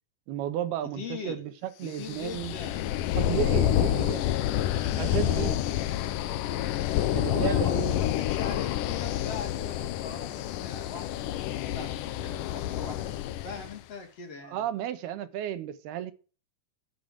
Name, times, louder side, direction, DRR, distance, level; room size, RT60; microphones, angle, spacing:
voice 1, 0.3-2.5 3.2-4.4 5.0-5.6 7.1-8.1 14.4-16.1, right 11 dB, 85° right, 3.2 m, -33 dB
voice 2, 1.0-1.4 1.8-2.9 3.9-4.7 7.2-14.6, left 4 dB, 45° left, 3.2 m, -41 dB
sound 1, 2.0-13.8, left 12 dB, 75° left, 2.2 m, -28 dB
13.5 x 9.1 x 7.8 m
omnidirectional pair, 4.4 m